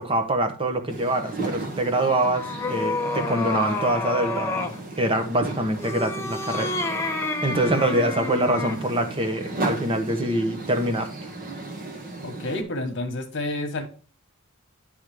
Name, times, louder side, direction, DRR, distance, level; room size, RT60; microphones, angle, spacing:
voice 1, 0.0-6.8 7.4-11.3, right 1 dB, 25° right, 7 dB, 1.1 m, -25 dB
sound 1, 0.9-12.6, right 2 dB, 40° right, 1.5 m, -35 dB
sound 2, 1.8-4.8 5.7-8.9, left 2 dB, 15° left, 0.9 m, -29 dB
voice 2, 12.2-13.8, left 2 dB, 60° left, 4 dB, 1.4 m, -29 dB
10.5 x 3.6 x 4.9 m, 0.39 s
head